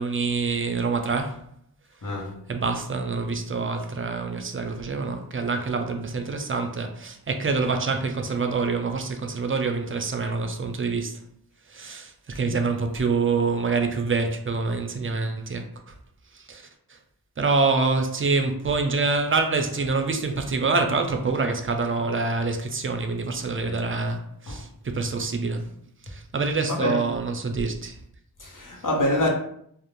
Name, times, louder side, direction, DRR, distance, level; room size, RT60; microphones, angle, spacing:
voice 1, 0.0-1.4 2.5-11.2 11.7-15.6 16.3-17.0 17.4-25.7 26.0-28.0, right 4 dB, 35° right, 0.4 m, -26 dB
voice 2, 2.0-2.4 10.2-10.3 12.3-12.4 23.6-23.8 24.5-24.7 26.7-27.1 28.4-29.3, left 1 dB, 50° left, 0.8 m, -27 dB
2.4 x 2.0 x 3.0 m
cardioid pair, 40°, 40 cm